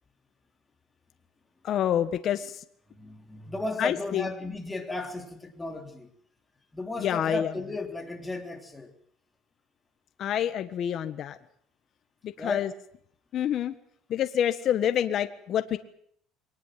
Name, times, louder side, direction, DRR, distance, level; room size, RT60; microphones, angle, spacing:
voice 1, 1.6-2.6 3.8-4.3 7.0-7.5 10.2-11.4 12.2-12.7 13.3-13.7 14.1-15.8, left 10 dB, 45° left, 10 dB, 1.5 m, -27 dB
voice 2, 3.0-6.1 6.7-8.9 12.4-12.7, left 2 dB, 10° left, 4 dB, 3.4 m, -34 dB
23.0 x 19.0 x 7.7 m, 0.64 s
cardioid pair, 135°, 0 cm